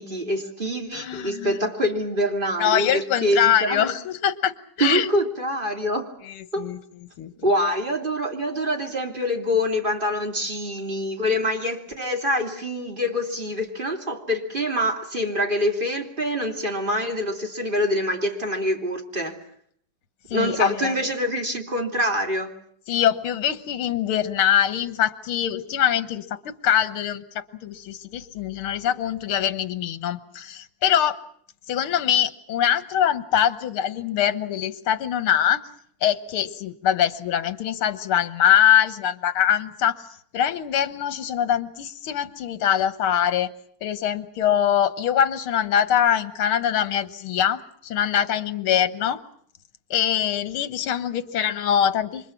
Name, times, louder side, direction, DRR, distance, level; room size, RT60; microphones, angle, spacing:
voice 1, 0.0-3.9 4.8-6.1 6.5-6.7 7.4-19.4 20.3-22.5, equal, 25° right, 3.0 m, -25 dB
voice 2, 0.9-1.6 2.6-5.1 6.2-6.8 7.2-7.3 20.3-21.0 22.9-31.2 31.7-35.6 36.0-43.5 43.8-49.2 49.9-52.3, left 9 dB, 80° left, 2.1 m, -23 dB
28.5 x 25.0 x 5.9 m
omnidirectional pair, 2.3 m